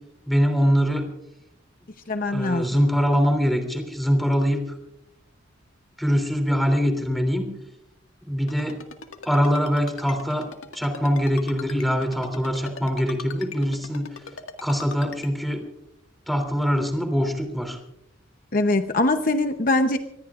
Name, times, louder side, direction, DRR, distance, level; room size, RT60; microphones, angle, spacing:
voice 1, 0.3-1.1 2.3-4.6 6.0-7.5 8.2-8.8 9.2-10.5 10.7-14.1 14.6-15.6 16.3-17.8, equal, ahead, 4 dB, 3.0 m, -23 dB
voice 2, 2.1-2.7 18.5-20.0, left 2 dB, 45° left, 7 dB, 0.8 m, -22 dB
Ringtone, 8.5-15.3, left 5 dB, 90° left, 1.8 m, -39 dB
25.0 x 20.5 x 2.5 m, 0.80 s
head